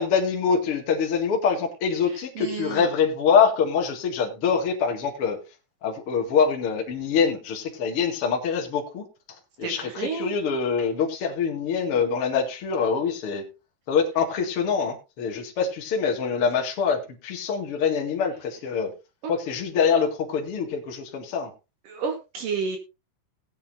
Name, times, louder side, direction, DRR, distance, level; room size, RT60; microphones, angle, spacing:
voice 1, 0.0-5.4 5.8-9.0 9.6-13.4 13.9-18.9 19.3-21.5, left 6 dB, 45° left, 1 dB, 2.4 m, -24 dB
voice 2, 2.4-2.9 9.6-10.3 19.2-19.3 21.9-22.8, right 5 dB, 60° right, 5 dB, 3.0 m, -30 dB
19.0 x 8.4 x 2.7 m, 0.27 s
omnidirectional pair, 4.6 m